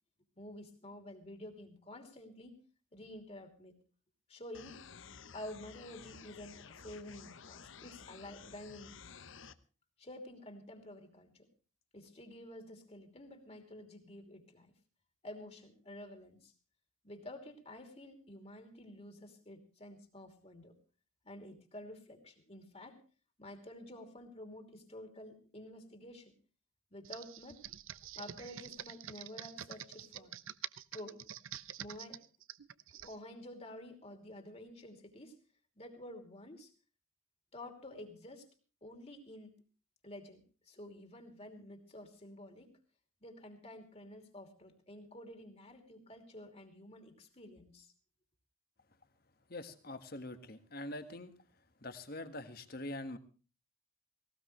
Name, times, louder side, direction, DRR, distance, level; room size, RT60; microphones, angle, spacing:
voice 1, 0.4-2.6 2.9-3.7 4.3-4.8 5.3-8.9 10.0-11.5 11.9-14.7 15.2-16.5 17.0-20.7 21.2-23.0 23.4-26.3 26.9-27.6 28.2-30.3 30.9-31.2 31.8-32.2 32.9-35.4 35.8-36.7 37.5-38.5 38.8-39.6 40.0-42.8 43.2-47.9, left 1 dB, 30° left, 5 dB, 2.8 m, -50 dB
sound 1, 4.5-9.5, left 6 dB, 70° left, 1.0 m, -53 dB
Computer keyboard, 27.0-33.2, right 10 dB, 75° right, 0.7 m, -47 dB
voice 2, 49.5-51.3 51.8-53.2, left 1 dB, 45° left, 10 dB, 1.6 m, -44 dB
18.5 x 18.5 x 3.2 m, 0.36 s
head